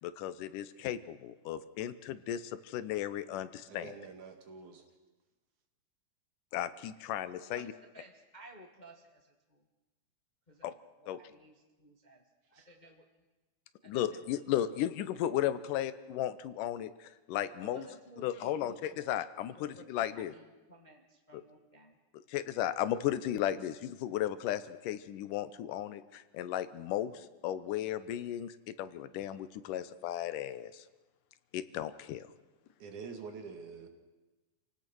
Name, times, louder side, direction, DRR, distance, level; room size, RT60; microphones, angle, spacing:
voice 1, 0.0-3.9 6.5-7.7 10.6-10.7 11.1-11.2 13.9-17.8 18.2-20.3 21.3-21.4 22.3-30.8 31.5-32.3, left 11 dB, 85° left, 14 dB, 2.4 m, -35 dB
voice 2, 3.7-4.8 12.5-12.7 32.8-33.9, right 5 dB, 70° right, 5 dB, 3.6 m, -46 dB
voice 3, 7.4-9.7 10.5-13.1 13.8-14.3 17.6-19.1 19.5-22.0, equal, 25° left, 3 dB, 1.0 m, -56 dB
27.5 x 17.5 x 6.2 m, 1.2 s
omnidirectional pair, 3.6 m